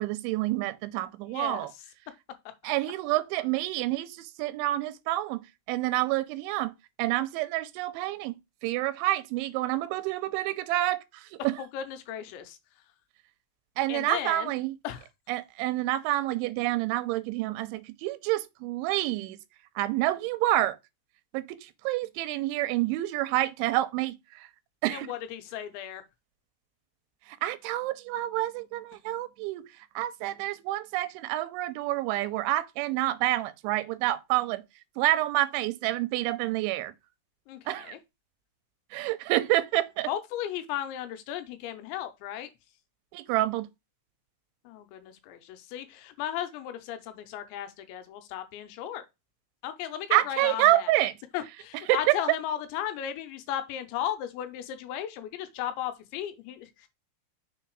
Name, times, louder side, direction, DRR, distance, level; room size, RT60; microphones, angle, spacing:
voice 1, 0.0-1.7 2.6-11.6 13.8-14.7 15.3-19.4 19.8-20.8 21.3-24.5 24.8-25.1 27.3-29.7 30.0-34.6 35.0-36.9 37.7-37.9 38.9-40.1 43.1-43.7 50.1-51.1 51.9-52.2, right 16 dB, 90° right, 3.0 m, -28 dB
voice 2, 1.3-1.7 11.6-12.6 13.9-14.5 14.8-15.1 24.9-26.0 37.5-38.0 40.1-42.5 44.6-49.0 49.6-50.9 51.3-56.9, left 10 dB, 85° left, 3.2 m, -35 dB
6.7 x 3.9 x 4.6 m
omnidirectional pair, 5.2 m